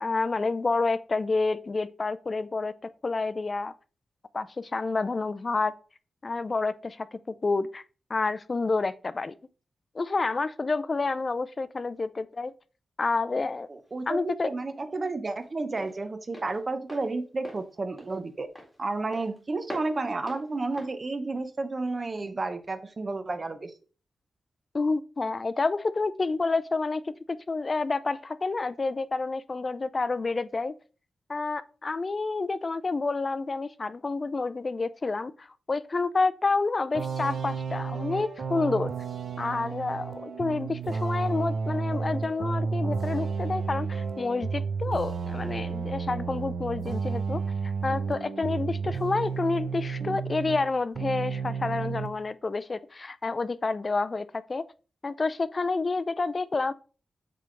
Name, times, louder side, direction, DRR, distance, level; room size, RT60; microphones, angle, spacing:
voice 1, 0.0-3.7 4.3-5.7 6.2-7.8 8.1-9.3 9.9-12.5 13.0-13.7 14.1-14.5 24.7-30.7 31.3-38.9 39.4-47.4 47.8-54.6 55.0-56.7, left 3 dB, 40° left, 0.4 m, -29 dB
Walk footsteps, 13.5-22.2, equal, ahead, 2.0 m, -46 dB
voice 2, 13.7-18.5 18.8-23.7, right 3 dB, 40° right, 0.8 m, -31 dB
sound 1, 36.9-50.7 51.0-52.1, right 5 dB, 70° right, 0.7 m, -32 dB
7.6 x 3.4 x 3.8 m
wide cardioid pair, 100°, 0 cm